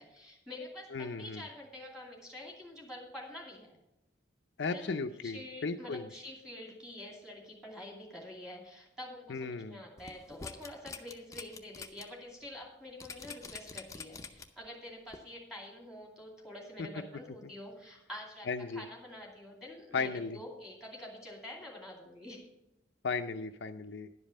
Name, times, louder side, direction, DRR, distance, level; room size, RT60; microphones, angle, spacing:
voice 1, 0.0-3.8 4.7-22.5, left 1 dB, 5° right, -2 dB, 2.5 m, -47 dB
voice 2, 0.9-1.4 4.6-6.1 9.3-9.8 16.8-16.9 17.4-17.5 18.5-18.8 19.9-20.4 23.0-24.1, left 4 dB, 65° left, 7 dB, 0.5 m, -35 dB
sound 1, 10.0-12.0 12.4-12.5 13.0-14.7 15.1-15.2, left 4 dB, 15° left, 0.6 m, -45 dB
11.0 x 5.3 x 7.3 m, 0.87 s
head